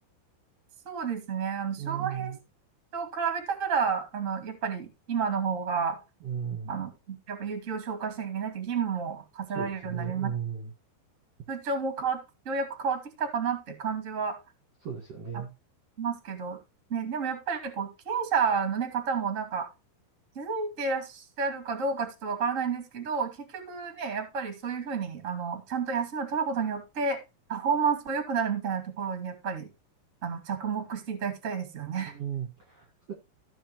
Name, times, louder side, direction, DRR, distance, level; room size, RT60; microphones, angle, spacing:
voice 1, 0.8-2.3 2.9-6.0 6.7-10.3 11.5-12.2 12.4-14.4 15.3-15.4 16.0-16.6 16.9-19.7 20.3-27.2 27.5-29.7 30.2-32.1, right 6 dB, 30° right, 1.3 m, -31 dB
voice 2, 1.8-2.4 6.2-6.8 9.5-10.7 14.8-15.5 32.1-33.1, right 8 dB, 55° right, 1.9 m, -35 dB
16.0 x 6.0 x 3.0 m
omnidirectional pair, 5.4 m